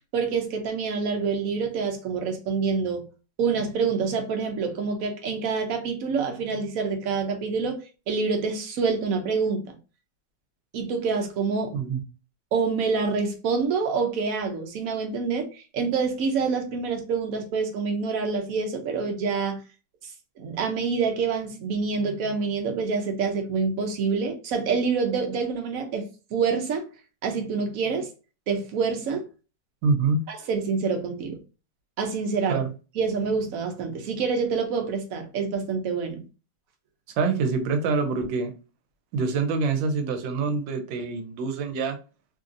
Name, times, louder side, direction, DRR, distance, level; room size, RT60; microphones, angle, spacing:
voice 1, 0.1-3.1 3.4-7.8 8.1-9.6 10.7-11.7 12.5-15.5 15.7-19.6 20.4-26.0 26.3-26.8 27.2-28.1 28.5-29.2 30.3-31.4 32.0-32.6 33.0-36.2, right 5 dB, 60° right, 0.9 m, -26 dB
voice 2, 29.8-30.3 32.5-32.7 37.2-38.5 39.1-42.0, right 4 dB, 85° right, 1.3 m, -25 dB
3.0 x 2.7 x 2.4 m
omnidirectional pair, 2.0 m